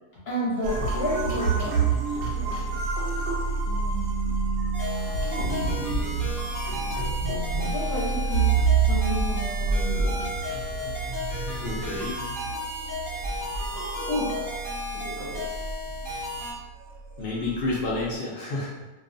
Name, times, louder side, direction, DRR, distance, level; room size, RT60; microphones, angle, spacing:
voice 1, 0.3-1.8 2.1-2.8 3.6-6.5 6.8-6.9 7.7-10.3 12.7-13.0 14.1-14.5 14.9-15.4, equal, 50° left, -7 dB, 0.8 m, -32 dB
sound 1, 0.6-18.1, right 4 dB, 90° right, 1.1 m, -28 dB
sound 2, 4.7-16.5, left 1 dB, 15° right, 0.8 m, -34 dB
voice 2, 11.6-12.2 12.6-12.7 13.7-13.8 15.1-15.2 17.2-18.9, left 2 dB, 80° left, -5 dB, 0.5 m, -31 dB
2.3 x 2.3 x 2.5 m, 1.2 s
omnidirectional pair, 1.6 m